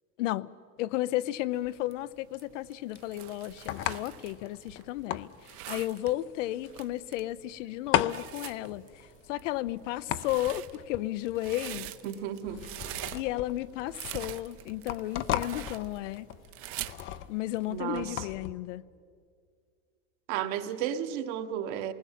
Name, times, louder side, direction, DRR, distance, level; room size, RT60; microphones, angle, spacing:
voice 1, 0.2-0.5 0.8-8.8 9.3-11.9 13.1-16.3 17.3-18.8, left 15 dB, 80° left, 15 dB, 0.8 m, -33 dB
sound 1, 0.8-18.5, left 12 dB, 35° left, 0.6 m, -37 dB
sound 2, 1.5-17.8, right 14 dB, 35° right, 0.7 m, -44 dB
voice 2, 12.0-12.7 17.7-18.3 20.3-21.9, right 10 dB, 55° right, 7 dB, 1.5 m, -33 dB
27.5 x 20.0 x 7.5 m, 2.2 s
supercardioid pair, 150°, 37 cm